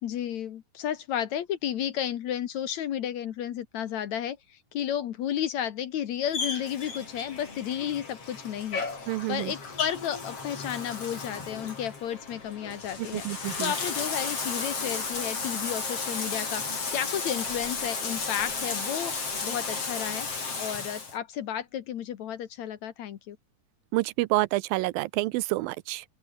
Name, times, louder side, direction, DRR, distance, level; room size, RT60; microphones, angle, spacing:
voice 1, 0.0-20.3 20.6-23.4, left 10 dB, 60° left, 2.2 m, -33 dB
Bathtub (filling or washing), 6.3-21.1, left 4 dB, 40° left, 5.6 m, -34 dB
voice 2, 9.1-9.5 13.1-13.7 23.9-26.0, right 19 dB, 85° right, 2.4 m, -28 dB
open air
omnidirectional pair, 4.1 m